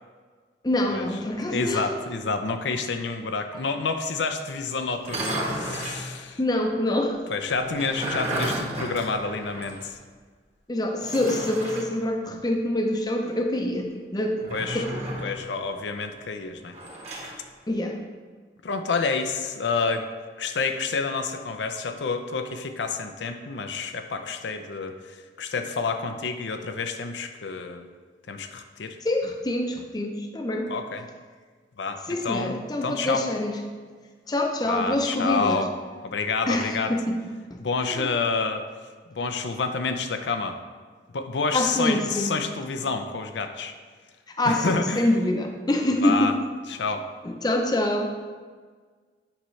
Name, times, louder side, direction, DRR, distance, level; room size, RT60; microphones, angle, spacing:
voice 1, 0.6-1.9 6.2-7.2 10.7-14.4 14.7-15.0 17.7-18.0 29.0-30.7 32.1-33.5 34.3-35.7 36.5-37.1 37.5-38.1 41.5-42.4 44.3-46.4 47.2-48.1, left 1 dB, 20° left, 3 dB, 0.6 m, -26 dB
voice 2, 1.5-6.4 7.3-10.0 14.5-14.8 15.2-16.8 18.6-20.1 20.4-27.9 28.3-29.0 30.7-31.0 31.8-33.3 34.7-35.7 36.0-36.9 37.6-38.6 39.2-40.6 41.1-43.7 44.4-45.1 46.0-46.3 46.7-47.0, left 4 dB, 85° left, 6 dB, 0.5 m, -29 dB
sound 1, 5.0-6.0 7.6-9.8 10.1-10.2 11.0-11.9 14.4-15.4 16.7-17.4, right 1 dB, 35° right, 1.3 m, -32 dB
8.7 x 5.6 x 3.2 m, 1.5 s
head